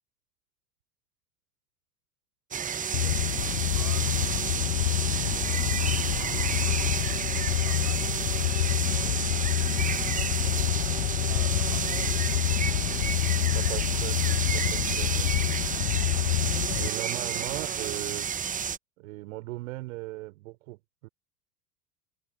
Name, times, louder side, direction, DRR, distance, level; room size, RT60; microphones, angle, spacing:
sound 1, 2.5-18.8, right 7 dB, 15° right, 0.9 m, -31 dB
sound 2, 2.9-16.9, left 18 dB, 60° left, 0.6 m, -27 dB
voice 1, 2.9-3.2 13.5-15.3 16.8-18.3 19.0-21.1, right 21 dB, 60° right, 5.6 m, -38 dB
voice 2, 3.4-4.7 5.0-8.2 9.0-10.9 11.3-12.1, right 12 dB, 35° right, 5.5 m, -49 dB
figure-of-eight pair, 80°, 46 cm